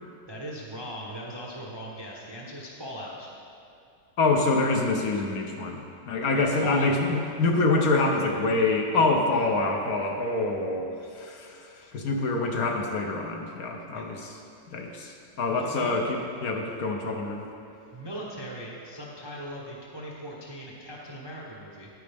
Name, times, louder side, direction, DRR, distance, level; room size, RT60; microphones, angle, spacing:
voice 1, 0.3-3.3 6.3-6.9 13.9-14.1 15.6-16.0 17.9-21.9, equal, 25° right, -4 dB, 0.6 m, -39 dB
voice 2, 4.2-14.4 14.7-17.5, left 3 dB, 65° left, 1 dB, 1.1 m, -26 dB
9.8 x 9.4 x 3.4 m, 2.5 s
omnidirectional pair, 1.9 m